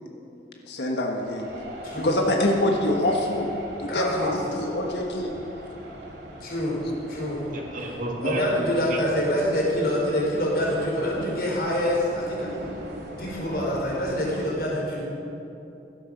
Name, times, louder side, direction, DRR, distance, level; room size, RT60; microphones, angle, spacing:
voice 1, 0.7-1.5 2.0-3.5 3.8-4.3 4.5-5.3, left 1 dB, 70° left, 1 dB, 1.5 m, -25 dB
sound 1, 1.2-14.5, equal, 75° right, 2.4 m, -40 dB
voice 2, 1.8-2.2 3.9-4.3 6.4-6.8 7.1-7.5 8.2-12.5 13.2-15.1, equal, 55° left, -3 dB, 4.7 m, -26 dB
voice 3, 7.5-9.0, right 2 dB, 50° right, 0 dB, 2.2 m, -31 dB
16.5 x 12.5 x 6.6 m, 2.8 s
head